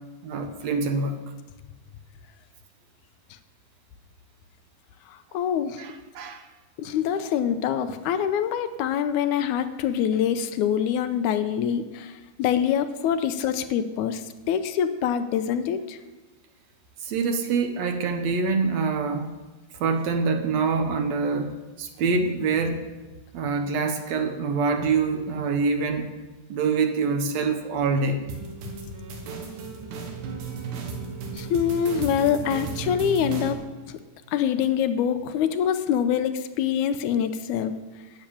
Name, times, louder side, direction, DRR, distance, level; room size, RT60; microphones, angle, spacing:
voice 1, 0.2-1.2 5.8-6.5 17.0-19.4 19.7-22.8 23.3-26.1 26.5-28.2, right 4 dB, 70° right, 6 dB, 1.9 m, -25 dB
voice 2, 5.3-5.8 6.8-12.1 12.4-14.2 14.5-16.0 31.4-33.6 34.3-37.7, left 8 dB, 80° left, 10 dB, 2.0 m, -25 dB
sound 1, 28.3-33.5, right 5 dB, 90° right, 3.1 m, -34 dB
10.5 x 7.1 x 8.7 m, 1.2 s
omnidirectional pair, 3.5 m